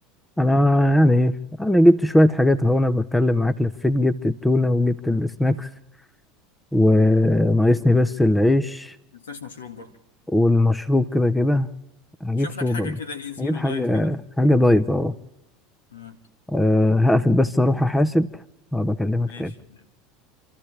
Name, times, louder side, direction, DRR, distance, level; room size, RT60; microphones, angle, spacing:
voice 1, 0.4-5.7 6.7-8.9 10.3-11.7 12.2-13.0 13.4-15.1 16.5-18.3 18.7-19.5, left 1 dB, 5° left, 12 dB, 0.9 m, -19 dB
voice 2, 9.1-9.9 12.4-14.2 15.9-16.2 19.2-19.9, left 5 dB, 80° left, 7 dB, 2.0 m, -37 dB
29.5 x 13.5 x 3.4 m, 0.81 s
hypercardioid pair, 80°, 0 cm